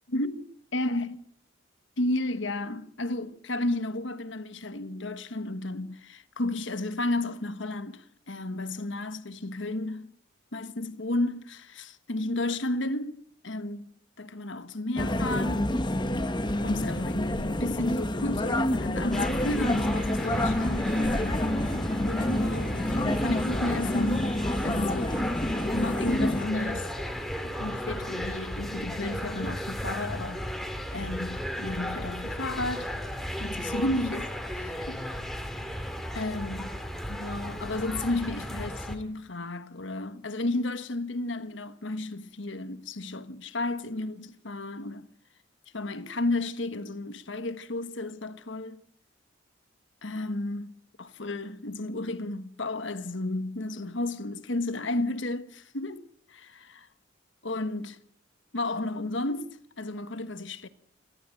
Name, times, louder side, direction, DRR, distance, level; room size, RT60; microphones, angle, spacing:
voice 1, 0.1-0.4 0.7-1.2 2.0-10.1 10.5-13.9 14.2-15.7 16.6-24.3 24.6-25.3 25.7-26.9 27.4-32.9 33.4-35.0 36.1-36.7 37.1-45.1 45.7-48.8 50.0-50.7 51.0-56.9 57.4-58.0 58.5-60.7, left 2 dB, 65° left, 1.4 m, -33 dB
sound 1, 15.0-26.5, left 1 dB, 20° left, 1.0 m, -28 dB
sound 2, 19.1-39.0, equal, ahead, 2.2 m, -35 dB
29.0 x 12.5 x 9.1 m
head